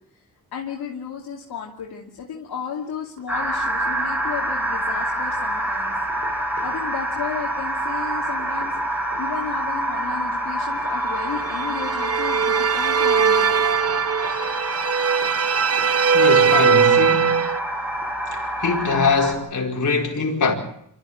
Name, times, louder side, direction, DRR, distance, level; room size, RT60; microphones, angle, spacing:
voice 1, 0.5-5.9 6.6-13.6 18.0-18.1, left 7 dB, 85° left, 2.8 m, -34 dB
Knock, 3.2-4.3 5.5-6.7 8.1-9.3 10.8-12.0 13.2-14.4 15.2-16.0 16.3-16.4, right 5 dB, 75° right, 6.0 m, -44 dB
sound 1, 3.3-19.3, right 1 dB, 5° right, 5.5 m, -27 dB
sound 2, 11.4-17.6, right 7 dB, 40° right, 0.8 m, -20 dB
voice 2, 16.1-17.5 18.3-20.6, left 4 dB, 55° left, 4.7 m, -23 dB
26.5 x 13.5 x 8.7 m
cardioid pair, 80°, 36 cm